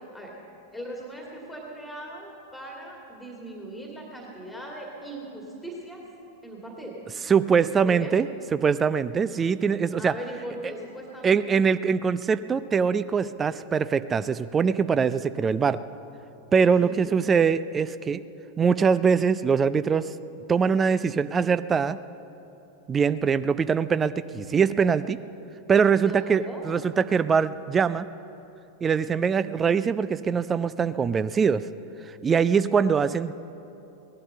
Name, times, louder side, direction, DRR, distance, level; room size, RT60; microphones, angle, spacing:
voice 1, 0.7-6.0 6.4-7.0 7.9-8.1 10.0-11.6 16.8-17.1 26.0-26.6, right 1 dB, 5° left, -1 dB, 2.2 m, -39 dB
voice 2, 7.3-10.1 11.2-15.8 16.5-18.2 18.6-20.1 20.5-22.0 22.9-25.2 25.7-28.1 28.8-31.7 32.2-33.3, right 6 dB, 20° right, 15 dB, 0.4 m, -23 dB
18.0 x 11.5 x 6.6 m, 3.0 s
figure-of-eight pair, 90°, 0 cm